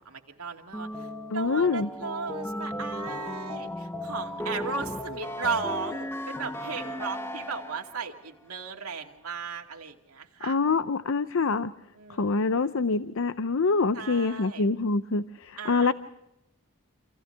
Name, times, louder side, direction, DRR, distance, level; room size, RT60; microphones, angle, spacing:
voice 1, 0.1-1.1 1.3-10.6 11.9-12.5 13.9-14.7 15.6-15.9, right 5 dB, 80° right, 2 dB, 2.4 m, -36 dB
sound 1, 0.7-8.0, left 1 dB, 10° left, 0.9 m, -36 dB
voice 2, 1.3-1.9 10.4-11.7 12.2-15.9, left 4 dB, 65° left, 13 dB, 0.6 m, -25 dB
29.0 x 27.0 x 3.4 m, 0.87 s
head